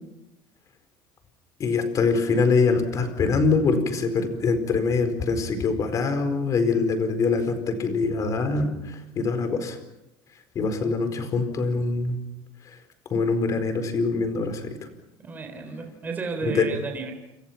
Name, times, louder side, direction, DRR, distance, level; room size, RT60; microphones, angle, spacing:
voice 1, 1.6-9.8 10.5-12.2 12.6-12.8 13.1-14.9 16.4-16.7, left 4 dB, 30° left, 8 dB, 4.5 m, -24 dB
voice 2, 15.2-17.1, right 4 dB, 15° right, 4 dB, 4.0 m, -32 dB
30.0 x 28.0 x 5.9 m, 0.90 s
cardioid pair, 165°, 11 cm